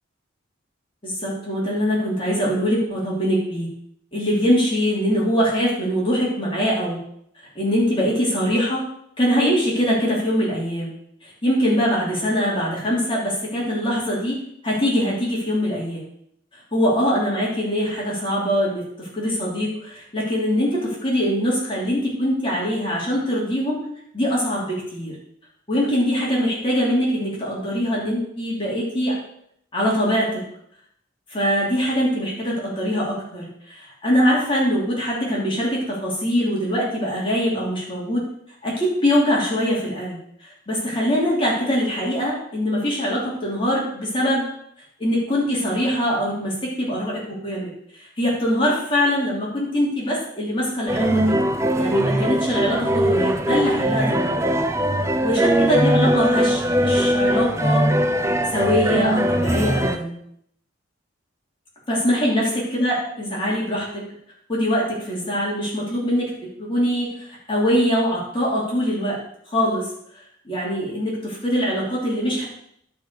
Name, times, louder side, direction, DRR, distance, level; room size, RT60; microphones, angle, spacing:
voice 1, 1.0-3.7 4.1-7.0 7.5-8.8 9.2-10.9 11.2-14.4 14.6-16.0 16.7-23.9 24.1-25.2 25.7-29.2 29.7-30.4 31.3-38.3 38.6-44.5 45.0-51.4 51.8-54.5 55.2-57.9 58.5-60.1 61.9-64.1 64.5-66.3 66.6-69.2 69.5-69.9 70.4-72.4, equal, 25° left, -5 dB, 2.9 m, -23 dB
sound 1, 50.9-60.0, equal, 15° right, 0.6 m, -20 dB
11.0 x 5.0 x 6.5 m, 0.72 s
head